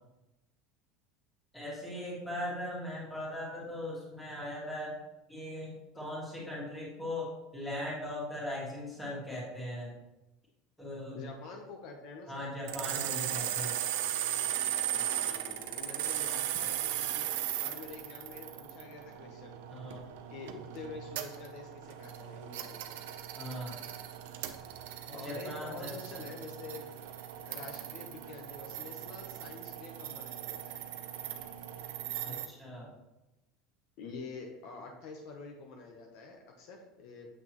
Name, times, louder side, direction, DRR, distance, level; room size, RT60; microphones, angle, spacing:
voice 1, 1.5-5.0 5.3-9.9 10.8-11.2 12.3-13.8 19.7-20.0 23.4-23.8 25.1-26.3 32.2-32.9, left 1 dB, 5° left, -6 dB, 2.1 m, -39 dB
voice 2, 11.1-12.5 14.9-20.0 20.3-22.8 25.1-26.9 27.5-30.8 34.0-37.3, left 4 dB, 55° left, 1 dB, 0.9 m, -47 dB
sound 1, 12.7-32.5, right 11 dB, 80° right, 0.6 m, -37 dB
7.7 x 5.9 x 3.1 m, 0.99 s
supercardioid pair, 160°, 0 cm